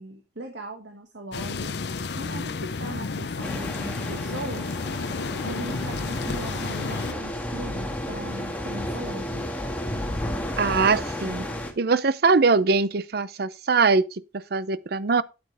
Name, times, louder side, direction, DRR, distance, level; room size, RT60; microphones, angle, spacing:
voice 1, 0.0-1.8 2.1-4.7 5.4-9.5, right 1 dB, 75° right, 1.7 m, -38 dB
sound 1, 1.3-7.1, left 4 dB, 65° left, 0.6 m, -31 dB
sound 2, 3.4-11.7, left 1 dB, 10° left, 1.8 m, -32 dB
voice 2, 10.6-11.5 11.8-15.2, right 4 dB, 60° right, 0.6 m, -22 dB
9.6 x 8.5 x 3.4 m
head